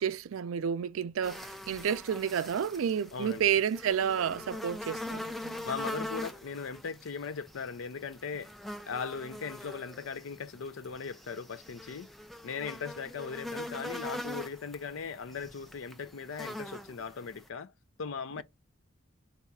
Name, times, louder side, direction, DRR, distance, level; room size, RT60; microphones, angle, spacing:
voice 1, 0.0-5.7, right 8 dB, 85° right, 0.4 m, -30 dB
sound 1, 1.2-17.5, left 1 dB, ahead, 0.3 m, -43 dB
voice 2, 3.1-3.5 5.6-8.5 8.9-12.1 12.4-17.7 18.0-18.4, left 5 dB, 75° left, 0.5 m, -38 dB
4.0 x 2.4 x 4.0 m
head